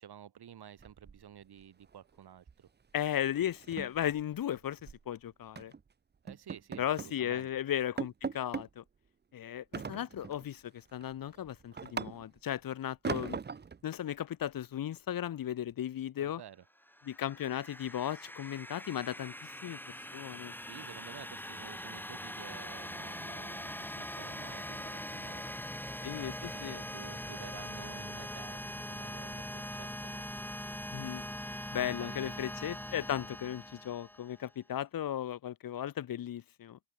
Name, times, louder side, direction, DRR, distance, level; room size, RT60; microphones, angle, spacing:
voice 1, 0.0-2.7 6.2-7.5 16.2-16.6 20.6-25.6 26.0-30.2 32.0-32.5, right 9 dB, 80° right, 4.8 m, -51 dB
sound 1, 0.8-1.6 1.9-2.2 2.5-2.7 3.0-3.1 3.5-5.0 5.6-5.8 6.3-7.2 7.6-7.7 8.0-8.7 9.7-10.5 10.9-12.5 13.0-13.8, right 5 dB, 25° right, 0.6 m, -40 dB
voice 2, 2.9-5.7 6.8-8.8 9.3-13.4 13.8-16.4 17.0-19.8 20.1-20.5 26.0-26.8 30.9-31.3 31.7-36.8, left 11 dB, 60° left, 0.8 m, -36 dB
sound 2, 16.8-34.5, left 1 dB, 5° left, 3.0 m, -42 dB
supercardioid pair, 45°, 38 cm